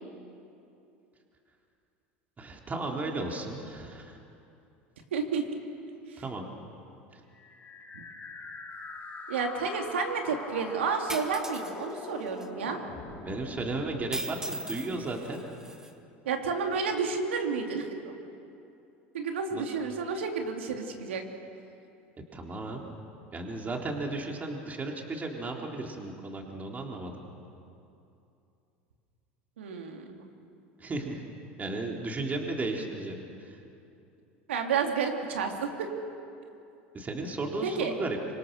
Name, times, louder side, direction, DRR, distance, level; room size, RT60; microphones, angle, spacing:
voice 1, 2.4-4.2 6.2-6.5 7.1-7.2 13.2-15.4 19.5-19.6 22.3-22.9 23.3-27.2 30.8-31.2 31.6-33.6 36.9-38.2, right 2 dB, 25° right, 1 dB, 3.7 m, -34 dB
voice 2, 5.1-5.4 6.1-6.2 7.9-8.0 9.3-12.8 16.2-18.1 19.1-21.2 29.6-30.2 34.5-35.9 37.6-37.9, right 5 dB, 85° right, 3 dB, 3.1 m, -31 dB
sound 1, 7.3-15.3, left 4 dB, 30° left, 5.7 m, -43 dB
sound 2, 11.1-11.7 12.4-12.5 14.1-15.9, right 1 dB, 10° right, 2.2 m, -38 dB
25.5 x 25.0 x 6.9 m, 2.7 s
hypercardioid pair, 85°, 6 cm